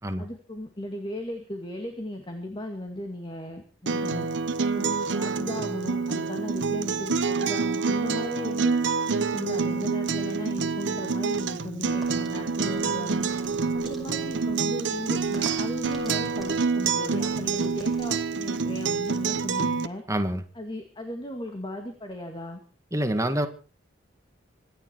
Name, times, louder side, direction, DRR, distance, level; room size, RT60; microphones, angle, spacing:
voice 1, 0.2-4.3 4.7-8.7 9.1-13.3 13.7-20.0 20.5-22.6, left 1 dB, 25° left, 4 dB, 2.2 m, -36 dB
Acoustic guitar, 3.9-19.9, right 4 dB, 65° right, 1.0 m, -27 dB
sound 1, 11.8-18.3, equal, ahead, 5.7 m, -48 dB
voice 2, 20.1-20.4 22.9-23.5, right 1 dB, 15° right, 8 dB, 1.7 m, -26 dB
25.5 x 10.5 x 4.6 m, 0.38 s
head